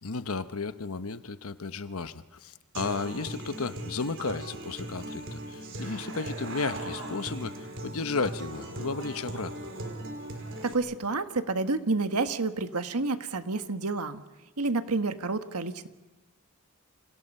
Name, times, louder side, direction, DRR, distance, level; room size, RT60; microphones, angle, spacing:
voice 1, 0.0-9.5, left 4 dB, 75° left, 12 dB, 1.0 m, -34 dB
Human voice / Acoustic guitar, 2.7-10.7, right 1 dB, 60° right, 4.8 m, -38 dB
voice 2, 10.6-14.2 14.6-15.9, right 3 dB, 90° right, 8 dB, 1.6 m, -29 dB
29.5 x 27.5 x 5.6 m, 1.1 s
head